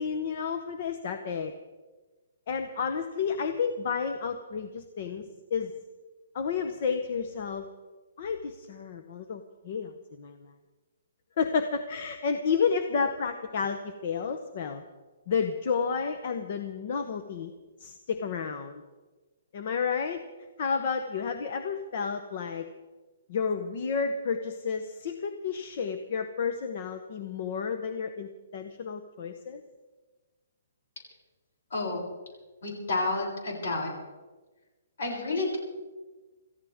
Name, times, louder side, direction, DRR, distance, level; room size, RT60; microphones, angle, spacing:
voice 1, 0.0-1.5 2.5-5.7 6.3-7.7 8.2-10.5 11.4-14.8 15.3-17.5 17.8-18.8 19.5-20.2 20.6-22.7 23.3-29.6, left 6 dB, 35° left, 7 dB, 0.9 m, -31 dB
voice 2, 31.7-32.0 32.6-33.9 35.0-35.6, left 2 dB, 60° left, -2 dB, 7.2 m, -30 dB
27.0 x 14.5 x 3.6 m, 1.2 s
hypercardioid pair, 175°, 0 cm